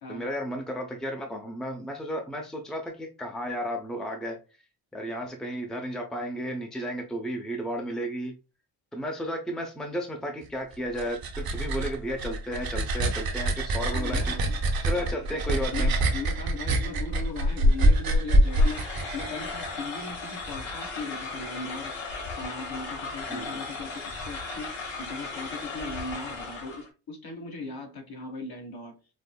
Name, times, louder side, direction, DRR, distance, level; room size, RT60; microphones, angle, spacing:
voice 1, 0.1-4.4 4.9-8.3 8.9-14.3 14.8-15.9 23.3-23.6, equal, ahead, 0.6 m, -33 dB
sound 1, 10.7-19.7, right 1 dB, 50° right, 0.8 m, -25 dB
voice 2, 13.7-14.6 15.7-22.0 22.3-29.0, left 3 dB, 55° left, 1.4 m, -38 dB
sound 2, 18.5-26.9, left 3 dB, 80° left, 1.4 m, -36 dB
5.2 x 2.0 x 2.2 m
cardioid pair, 80°, 45 cm